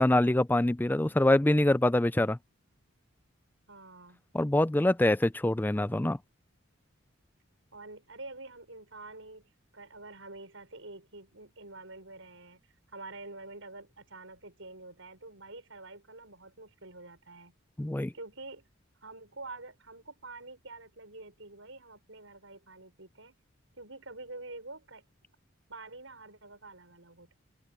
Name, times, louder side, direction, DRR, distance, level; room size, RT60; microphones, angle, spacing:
voice 1, 0.0-2.4 4.3-6.2 17.8-18.1, left 1 dB, 10° left, 0.3 m, -25 dB
voice 2, 3.7-4.3 7.7-12.6 12.9-17.5 18.1-18.7 19.0-23.4 23.8-25.1 25.7-27.3, right 2 dB, 70° right, 6.3 m, -47 dB
open air
head